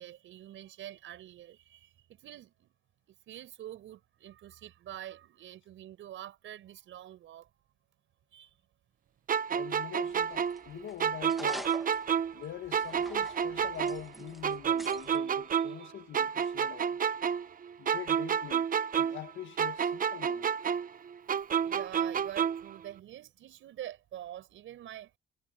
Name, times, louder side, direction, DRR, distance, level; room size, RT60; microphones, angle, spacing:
voice 1, 0.0-2.7 3.1-7.5 8.3-8.5 15.0-15.2 15.5-15.9 21.6-25.1, right 12 dB, 80° right, 6.5 m, -46 dB
sound 1, 9.3-12.4 12.7-15.9 16.1-19.3 19.6-22.7, right 7 dB, 45° right, 0.9 m, -30 dB
voice 2, 9.5-11.8 12.3-17.0 17.8-18.7 19.0-20.6, left 12 dB, 75° left, 1.7 m, -44 dB
sound 2, 10.1-15.2, equal, ahead, 1.4 m, -48 dB
cardioid pair, 90°, 20 cm